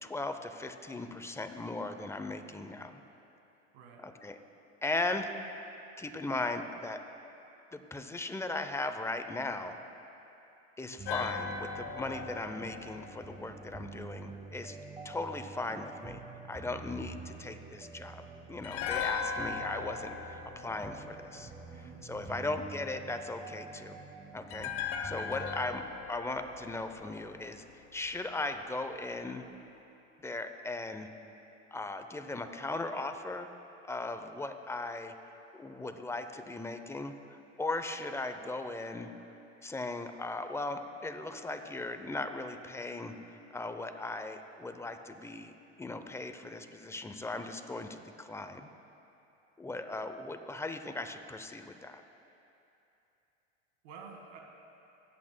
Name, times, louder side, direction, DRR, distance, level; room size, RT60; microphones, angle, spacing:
voice 1, 0.0-3.0 4.0-4.4 4.8-5.3 6.0-7.0 7.7-9.8 10.8-14.8 15.0-16.2 16.5-21.5 22.0-24.0 24.3-25.8 26.1-29.5 30.2-31.1 31.7-33.5 33.9-35.1 35.5-39.1 39.6-43.1 43.5-45.5 45.8-48.7 49.6-52.0, left 2 dB, 10° left, 8 dB, 0.5 m, -38 dB
sound 1, 11.0-14.2 18.6-21.8 24.5-27.7 28.0-28.1, left 6 dB, 70° left, 1.0 m, -39 dB
sound 2, 11.0-25.8, right 4 dB, 15° right, 0.8 m, -47 dB
voice 2, 21.7-22.4 53.8-54.4, right 5 dB, 75° right, 0 dB, 1.7 m, -50 dB
20.0 x 8.6 x 2.2 m, 2.9 s
hypercardioid pair, 95°, 35 cm